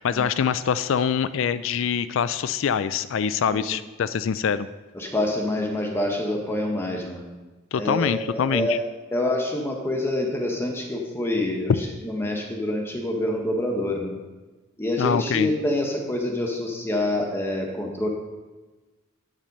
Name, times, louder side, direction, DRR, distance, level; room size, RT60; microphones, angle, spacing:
voice 1, 0.0-4.7 7.7-8.8 15.0-15.5, left 7 dB, 65° left, 14 dB, 0.4 m, -24 dB
voice 2, 4.9-7.2 7.7-8.8 9.1-11.7 12.0-14.2 14.8-18.1, left 1 dB, 10° left, 0 dB, 1.3 m, -26 dB
8.8 x 7.4 x 5.3 m, 1.2 s
head